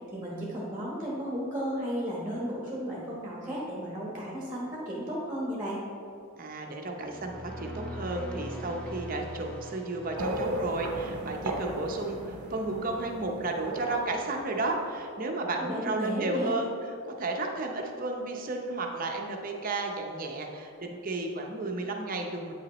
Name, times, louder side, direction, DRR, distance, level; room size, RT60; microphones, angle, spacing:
voice 1, 0.1-5.8 15.7-16.5, equal, 15° right, -5 dB, 1.1 m, -34 dB
voice 2, 6.4-16.7 17.1-22.5, right 2 dB, 40° right, 2 dB, 0.7 m, -33 dB
sound 1, 7.0-11.3, equal, 5° left, 0.7 m, -41 dB
sound 2, 10.2-15.0, right 1 dB, 80° right, 0.7 m, -36 dB
8.6 x 5.8 x 3.0 m, 2.6 s
head